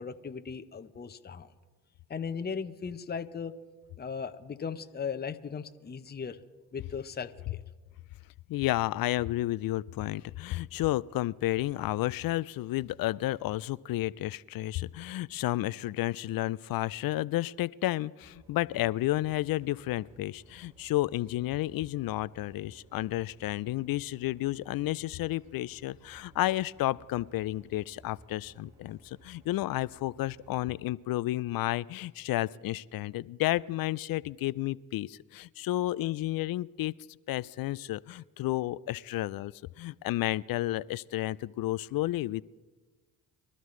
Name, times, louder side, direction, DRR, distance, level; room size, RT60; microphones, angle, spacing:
voice 1, 0.0-1.5 2.1-3.5 4.0-6.4 6.7-7.6, left 6 dB, 20° left, 9 dB, 0.8 m, -37 dB
voice 2, 8.5-36.9 37.3-39.5 39.8-42.4, left 16 dB, 50° left, 20 dB, 0.5 m, -31 dB
sound 1, 18.2-30.5, right 1 dB, 40° right, 5.4 m, -59 dB
25.0 x 12.5 x 3.2 m, 1.3 s
hypercardioid pair, 55°, 45 cm